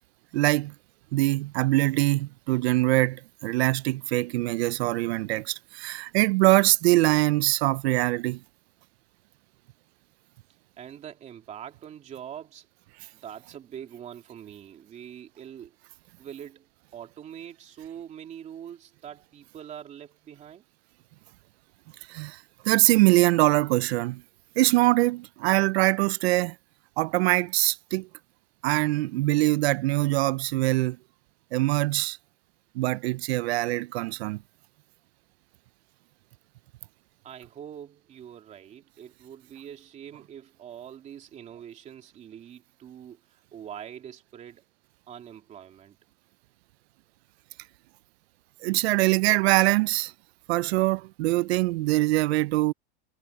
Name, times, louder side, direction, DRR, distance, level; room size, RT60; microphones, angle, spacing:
voice 1, 0.3-0.7 1.1-8.4 22.1-24.2 24.6-26.6 27.0-28.1 28.6-31.0 31.5-32.2 32.8-34.4 48.6-50.1 50.5-52.7, right 19 dB, 70° right, 0.5 m, -23 dB
voice 2, 10.8-12.7 13.2-15.7 16.2-16.7 16.9-20.6 37.2-44.7 45.1-46.0, right 9 dB, 20° right, 2.9 m, -43 dB
supercardioid pair, 170°, 33 cm